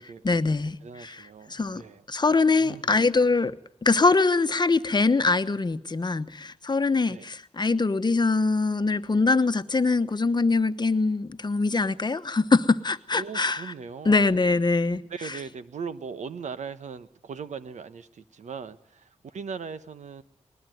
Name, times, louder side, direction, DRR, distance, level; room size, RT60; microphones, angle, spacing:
voice 1, 0.2-1.8 2.1-3.5 3.8-13.7 14.0-15.4, left 3 dB, 35° left, 1.1 m, -23 dB
voice 2, 0.8-2.0 2.6-3.0 7.1-7.2 13.1-14.2 15.1-20.2, right 6 dB, 80° right, 1.1 m, -39 dB
20.5 x 20.0 x 9.3 m
cardioid pair, 65°, 12 cm